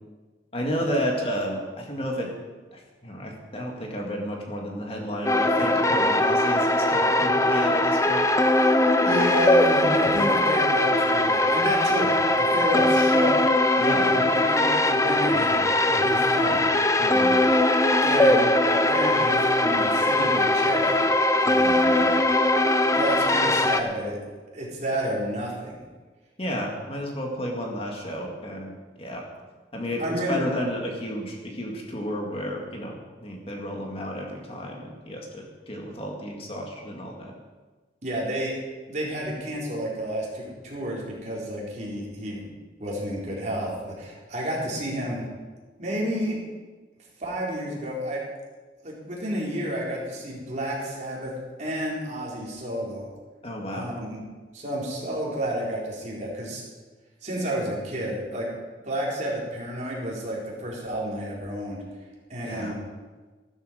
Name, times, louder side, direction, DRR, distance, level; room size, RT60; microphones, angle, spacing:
voice 1, 0.5-2.3 2.7-8.2 13.8-14.2 17.0-17.4 21.6-22.1 26.4-28.7 29.0-29.2 29.7-30.0 30.3-37.3 53.4-53.9 62.4-62.8, equal, 35° left, 0 dB, 2.1 m, -31 dB
sound 1, 5.2-23.8, left 1 dB, 15° left, 0.6 m, -21 dB
voice 2, 9.0-13.4 14.0-16.6 18.0-18.4 18.9-21.0 21.4-21.9 22.9-24.2 24.5-25.7 30.0-30.4 38.0-38.6 38.9-42.4 42.8-45.2 45.8-46.4 47.2-48.2 48.8-51.3 51.6-53.1 53.7-54.2 54.5-56.6 57.2-58.5 58.8-61.8 62.3-62.8, equal, 40° right, -4 dB, 4.1 m, -30 dB
14.0 x 13.0 x 5.2 m, 1.3 s
head